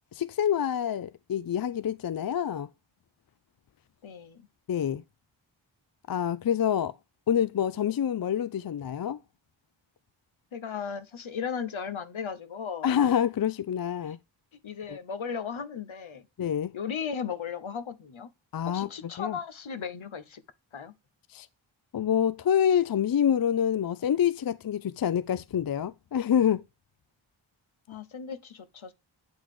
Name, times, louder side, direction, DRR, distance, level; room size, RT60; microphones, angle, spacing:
voice 1, 0.1-2.7 4.7-5.0 6.1-6.9 7.3-9.2 12.8-14.2 14.9-15.0 16.4-16.7 18.5-18.9 19.2-19.4 21.3-21.5 21.9-26.6, left 9 dB, 50° left, 0.5 m, -26 dB
voice 2, 4.0-4.5 10.5-12.9 14.0-14.2 14.6-16.3 16.7-18.3 18.7-20.4 20.7-20.9 27.9-28.9, left 6 dB, 75° left, 1.0 m, -36 dB
8.6 x 3.9 x 4.8 m
cardioid pair, 40°, 48 cm